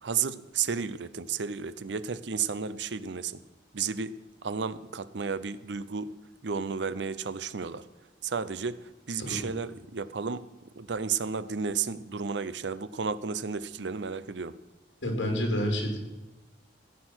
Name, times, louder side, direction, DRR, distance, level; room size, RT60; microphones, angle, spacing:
voice 1, 0.0-3.4 3.7-4.1 4.4-6.1 6.4-7.8 8.2-10.5 10.8-14.5, right 6 dB, 70° right, 15 dB, 0.7 m, -32 dB
voice 2, 9.2-9.5 15.0-16.0, equal, 80° left, 3 dB, 3.3 m, -29 dB
15.5 x 8.5 x 6.2 m, 1.1 s
head